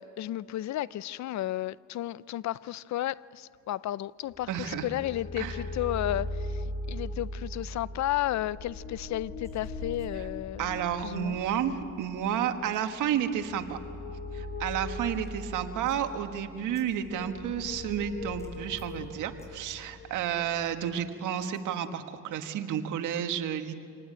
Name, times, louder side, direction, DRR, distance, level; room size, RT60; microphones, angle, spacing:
voice 1, 0.0-11.4, left 14 dB, 65° left, 0.5 m, -33 dB
sound 1, 4.3-21.1, left 1 dB, 30° left, 4.5 m, -40 dB
voice 2, 4.5-4.9 5.4-5.6 10.6-13.8 14.3-23.7, right 9 dB, 85° right, 1.6 m, -31 dB
sound 2, 9.4-9.7 9.9-10.1 11.1-11.2 12.7-13.0 15.0-15.5 15.9-16.2 16.7-17.1 18.4-18.5 18.8-18.9 19.4-19.7 21.4-21.8, equal, 10° left, 6.9 m, -62 dB
25.5 x 19.5 x 8.9 m
cardioid pair, 90°, 30 cm